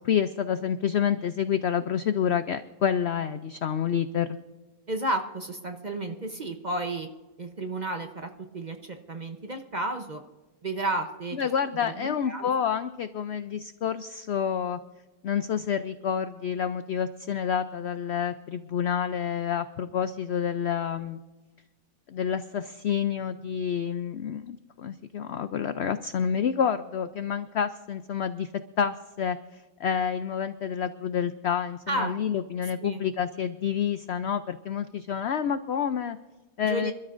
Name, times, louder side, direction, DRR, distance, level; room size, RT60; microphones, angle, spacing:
voice 1, 0.0-4.4 11.3-14.8 15.2-21.2 22.1-28.5 28.8-36.2 36.6-36.9, left 8 dB, 80° left, 11 dB, 0.6 m, -28 dB
voice 2, 4.9-7.1 7.4-10.2 10.6-11.4 11.8-12.5 31.9-32.2 32.8-33.0 36.6-36.9, right 2 dB, 35° right, 5 dB, 0.7 m, -32 dB
27.0 x 13.0 x 2.5 m, 1.2 s
omnidirectional pair, 1.7 m